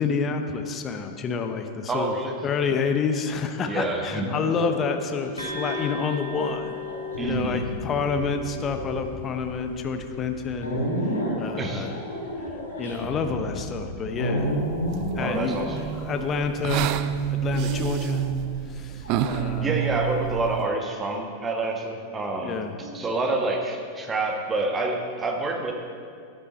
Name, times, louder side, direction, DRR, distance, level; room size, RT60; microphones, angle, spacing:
voice 1, 0.0-2.1 2.4-6.8 7.2-10.8 11.4-11.9 12.8-14.6 15.2-16.9 17.3-18.2 18.7-19.8 22.4-22.7, left 5 dB, 25° left, 6 dB, 0.9 m, -28 dB
voice 2, 1.9-2.4 3.6-4.3 7.2-7.6 11.6-11.9 15.2-15.8 19.6-25.7, right 2 dB, 20° right, 2 dB, 1.3 m, -28 dB
sound 1, 4.1-16.8 17.6-18.2 19.0-20.5 22.1-23.5, equal, 70° left, 2.3 m, -32 dB
sound 2, 5.4-12.9, left 5 dB, 85° left, 2.7 m, -38 dB
sound 3, 14.4-20.7, right 9 dB, 40° right, 0.4 m, -29 dB
12.0 x 9.1 x 4.3 m, 2.2 s
figure-of-eight pair, 90°, 0 cm